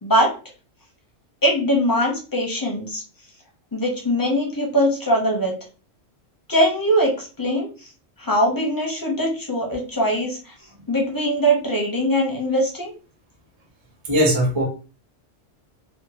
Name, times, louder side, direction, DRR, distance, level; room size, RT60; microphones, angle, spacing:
voice 1, 0.0-0.3 1.4-3.0 3.7-5.5 6.5-7.7 8.2-10.5 10.9-12.9, equal, 25° left, -1 dB, 0.5 m, -21 dB
voice 2, 14.1-14.6, equal, 30° right, -1 dB, 0.6 m, -19 dB
2.8 x 2.2 x 2.7 m, 0.35 s
omnidirectional pair, 1.3 m